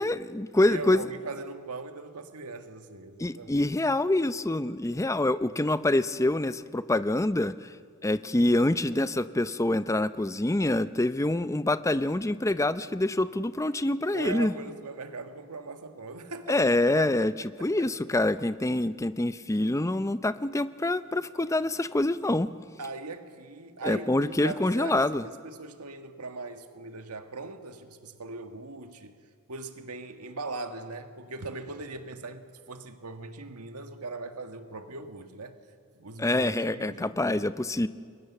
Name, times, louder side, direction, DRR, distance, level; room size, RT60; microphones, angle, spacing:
voice 1, 0.0-1.0 3.2-7.7 8.0-14.5 16.5-17.3 17.6-22.5 23.8-25.2 36.2-37.9, left 1 dB, 15° left, 13 dB, 0.6 m, -26 dB
voice 2, 0.7-3.6 14.1-17.9 21.4-21.5 22.8-29.1 29.5-35.6 36.0-37.5, right 3 dB, 85° right, 7 dB, 1.7 m, -40 dB
30.0 x 22.5 x 7.1 m, 2.1 s
head